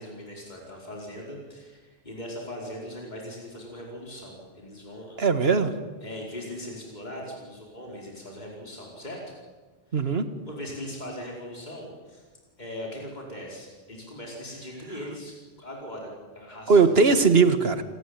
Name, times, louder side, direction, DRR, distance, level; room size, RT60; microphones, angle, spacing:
voice 1, 0.0-5.2 6.0-9.3 9.9-10.1 10.4-12.2 12.6-17.1, left 1 dB, 45° left, -2 dB, 5.1 m, -40 dB
voice 2, 5.2-5.7 9.9-10.3 16.7-17.8, right 4 dB, 70° right, 10 dB, 1.9 m, -19 dB
28.0 x 19.5 x 9.7 m, 1.4 s
omnidirectional pair, 1.1 m